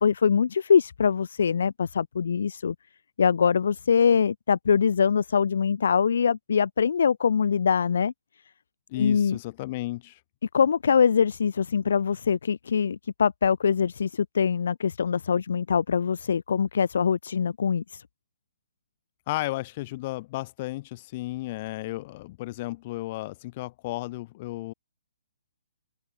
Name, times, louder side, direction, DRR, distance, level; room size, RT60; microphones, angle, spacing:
voice 1, 0.0-2.7 3.2-8.1 9.0-9.4 10.5-18.0, left 6 dB, 65° left, 1.5 m, -23 dB
voice 2, 8.9-10.2 19.3-24.7, left 18 dB, 40° left, 6.9 m, -33 dB
figure-of-eight pair, 135°, 0 cm